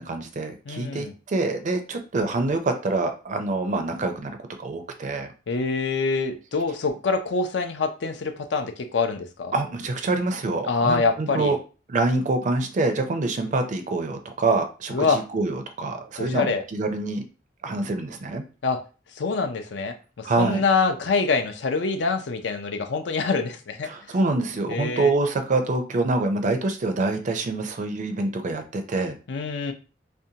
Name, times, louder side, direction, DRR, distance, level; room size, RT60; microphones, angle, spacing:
voice 1, 0.0-5.3 9.5-11.6 11.9-17.2 17.6-18.4 20.2-20.6 23.8-29.2, right 2 dB, 45° right, 7 dB, 0.4 m, -26 dB
voice 2, 0.7-1.1 5.5-9.5 10.7-11.5 14.9-15.2 16.2-16.6 18.6-18.8 19.2-23.9 24.7-25.1 29.3-29.7, left 4 dB, 70° left, 7 dB, 0.5 m, -25 dB
2.5 x 2.2 x 2.7 m, 0.34 s
head